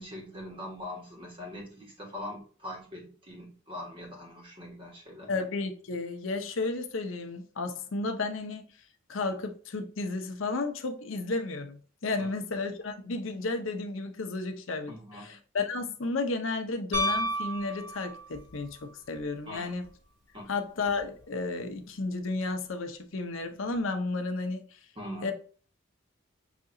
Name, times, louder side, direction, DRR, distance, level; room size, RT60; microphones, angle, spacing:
voice 1, 0.0-5.3 12.2-12.3 14.9-15.4 19.4-19.7 20.3-20.5 24.9-25.3, left 1 dB, 25° right, 1.5 m, -42 dB
voice 2, 5.3-8.6 9.1-19.8 20.5-24.7 25.2-25.3, left 3 dB, 80° left, 0.7 m, -33 dB
Piano, 16.9-18.5 20.9-21.0, equal, 60° right, 1.7 m, -31 dB
6.0 x 2.8 x 2.6 m
head